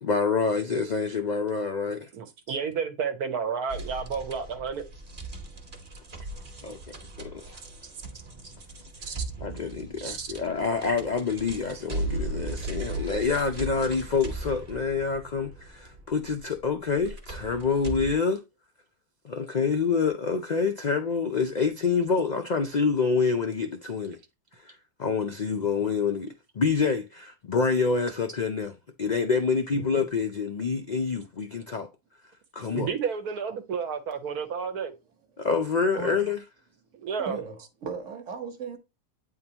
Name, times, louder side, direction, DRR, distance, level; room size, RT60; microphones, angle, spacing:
voice 1, 0.0-2.1 6.6-7.6 9.1-18.4 19.2-24.2 24.6-31.9 32.5-32.9 35.4-36.4, left 5 dB, 70° left, 0.4 m, -27 dB
voice 2, 2.1-4.8 9.1-9.2 10.0-10.3 32.7-34.9 36.9-37.4, right 6 dB, 80° right, 1.5 m, -31 dB
sound 1, 3.7-18.1, right 2 dB, 35° right, 1.3 m, -38 dB
voice 3, 37.2-38.8, right 5 dB, 55° right, 1.5 m, -36 dB
8.7 x 3.8 x 2.8 m
omnidirectional pair, 1.6 m